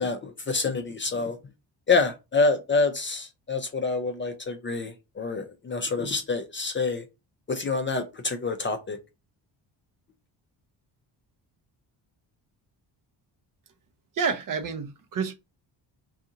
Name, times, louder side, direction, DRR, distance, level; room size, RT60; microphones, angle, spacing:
voice 1, 0.0-1.4 1.9-7.0 7.5-9.0, left 4 dB, 25° left, 0.4 m, -27 dB
voice 2, 14.1-15.3, right 5 dB, 45° right, 0.6 m, -29 dB
2.5 x 2.4 x 2.7 m
cardioid pair, 70°, 46 cm